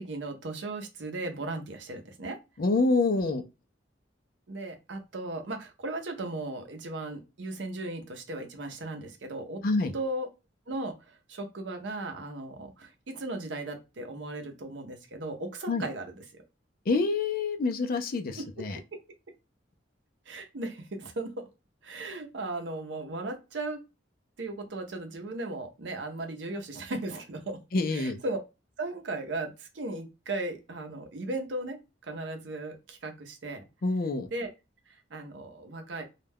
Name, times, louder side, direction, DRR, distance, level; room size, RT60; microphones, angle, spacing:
voice 1, 0.0-2.4 4.5-9.6 9.9-10.3 10.7-16.4 18.4-18.5 18.9-19.0 20.3-21.4 21.8-23.8 24.4-27.6 27.9-28.4 28.8-31.8 32.0-33.7 34.3-34.5 34.9-36.0, right 2 dB, 70° right, 0.6 m, -36 dB
voice 2, 2.6-3.4 9.6-9.9 15.7-15.8 16.9-18.8 27.7-28.2 33.8-34.3, left 3 dB, 50° left, 0.4 m, -27 dB
2.3 x 2.2 x 3.4 m
head